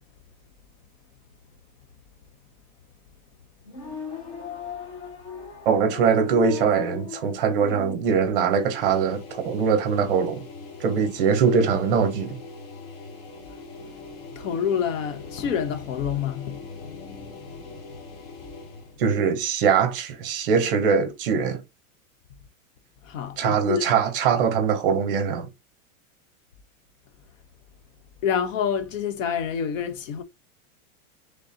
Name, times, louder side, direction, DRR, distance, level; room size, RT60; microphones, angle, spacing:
sound 1, 3.6-8.0, left 5 dB, 25° left, 0.5 m, -38 dB
voice 1, 5.7-10.4 10.8-12.4 19.0-21.6 23.4-25.5, right 6 dB, 40° right, 0.8 m, -22 dB
sound 2, 8.5-19.0, left 3 dB, 45° left, 1.1 m, -42 dB
voice 2, 14.2-18.0 23.0-23.9 28.2-30.2, left 7 dB, 65° left, 0.8 m, -28 dB
3.7 x 3.3 x 2.7 m
supercardioid pair, 175°, 42 cm